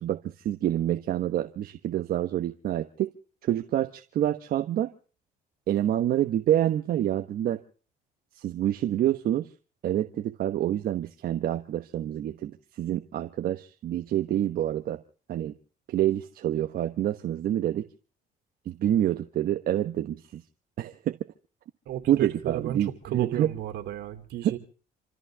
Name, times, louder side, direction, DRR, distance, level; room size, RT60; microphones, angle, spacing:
voice 1, 0.0-3.1 3.4-4.9 5.7-7.6 8.4-9.5 9.8-15.0 15.3-15.5 15.9-17.9 18.7-20.4 20.8-21.2 22.1-23.5, right 12 dB, 60° right, 8 dB, 1.1 m, -27 dB
voice 2, 21.9-24.6, right 12 dB, 80° right, 7 dB, 2.8 m, -33 dB
27.5 x 14.0 x 3.5 m, 0.40 s
cardioid pair, 110°, 17 cm